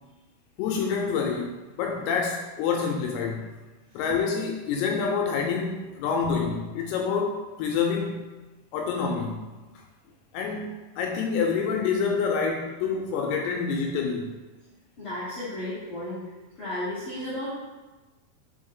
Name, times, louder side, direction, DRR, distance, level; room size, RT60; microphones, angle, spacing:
voice 1, 0.6-3.4 3.9-8.3 8.7-9.4 10.3-14.4, left 5 dB, 80° left, 1 dB, 2.4 m, -27 dB
voice 2, 15.0-16.2 16.5-17.6, left 1 dB, 55° left, -11 dB, 1.5 m, -33 dB
6.8 x 3.7 x 3.7 m, 1.2 s
omnidirectional pair, 4.9 m